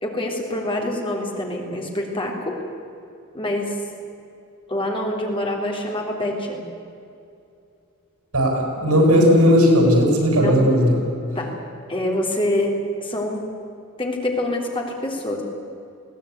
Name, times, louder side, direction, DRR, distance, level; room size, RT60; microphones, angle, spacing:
voice 1, 0.0-2.6 3.3-3.8 4.7-6.6 10.3-10.6 11.4-11.6 11.9-12.7 13.0-13.5 14.0-15.4, left 1 dB, 25° left, 0 dB, 3.6 m, -25 dB
voice 2, 8.3-11.0, equal, 85° right, 2 dB, 7.0 m, -16 dB
21.0 x 17.5 x 9.5 m, 2.6 s
head